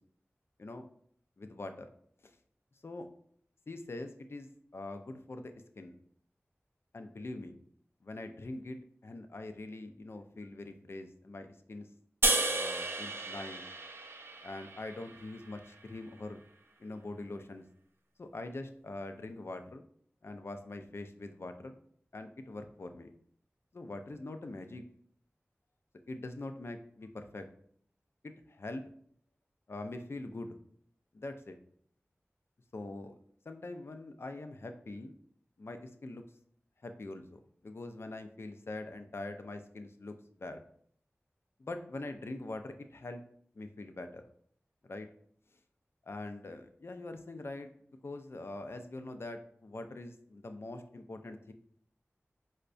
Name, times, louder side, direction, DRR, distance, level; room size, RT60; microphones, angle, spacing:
voice 1, 1.4-1.9 2.2-2.3 2.8-3.1 3.7-5.9 6.9-7.6 8.0-8.8 9.0-11.9 12.5-13.6 14.4-16.4 16.8-17.6 18.2-19.8 20.2-21.7 22.1-23.1 23.7-24.8 26.1-27.5 28.5-28.8 29.7-30.6 31.1-31.6 32.7-33.2 33.5-35.1 35.6-36.2 36.8-40.1 40.4-40.6 41.6-43.2 43.6-44.2 44.9-45.1 46.1-47.7 48.0-51.5, left 2 dB, 60° left, 7 dB, 0.4 m, -43 dB
sound 1, 12.2-15.5, right 2 dB, 55° right, 0.4 m, -33 dB
4.4 x 2.1 x 2.5 m, 0.62 s
wide cardioid pair, 50°, 5 cm